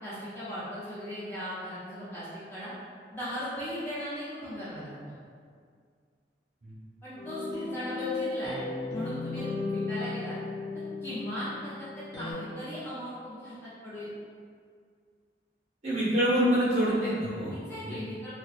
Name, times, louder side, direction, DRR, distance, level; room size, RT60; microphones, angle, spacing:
voice 1, 0.0-2.7 3.1-5.2 7.0-8.6 8.9-10.4 11.0-14.1 17.5-18.3, equal, 15° left, -11 dB, 0.4 m, -38 dB
sound 1, 7.2-12.3, left 3 dB, 90° left, 0.7 m, -35 dB
voice 2, 15.8-18.0, equal, 40° right, -10 dB, 0.8 m, -26 dB
2.6 x 2.0 x 2.3 m, 2.1 s
head